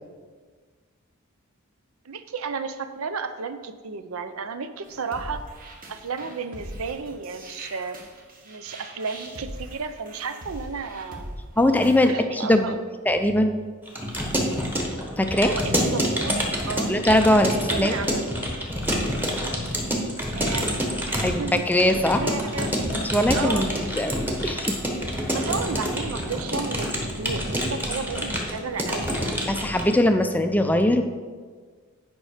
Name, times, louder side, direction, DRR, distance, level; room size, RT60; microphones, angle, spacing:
voice 1, 2.0-5.4 5.9-8.0 8.4-11.3 12.0-12.8 15.4-16.9 17.5-18.3 20.3-20.7 21.0-21.7 22.2-22.9 23.3-23.7 25.3-29.4, right 5 dB, 70° right, 10 dB, 0.6 m, -33 dB
sound 1, 4.8-12.1, right 1 dB, 40° right, 1.3 m, -41 dB
voice 2, 11.6-12.7 13.1-13.6 15.2-15.6 16.9-17.9 21.2-22.2 23.1-24.8 29.5-31.0, left 1 dB, 10° left, 7 dB, 0.4 m, -21 dB
Keyboard (musical) / Computer keyboard, 13.9-29.9, equal, 10° right, 1.2 m, -27 dB
9.3 x 5.4 x 4.9 m, 1.5 s
head